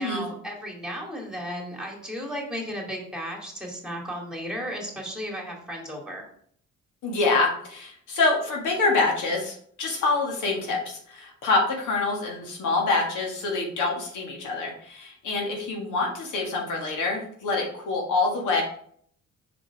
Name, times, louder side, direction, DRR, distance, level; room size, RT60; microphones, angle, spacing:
voice 1, 0.0-6.2, equal, 5° right, 0 dB, 2.3 m, -34 dB
voice 2, 7.0-18.6, left 3 dB, 85° left, 0 dB, 1.8 m, -26 dB
5.1 x 5.0 x 4.6 m, 0.62 s
cardioid pair, 90°, 30 cm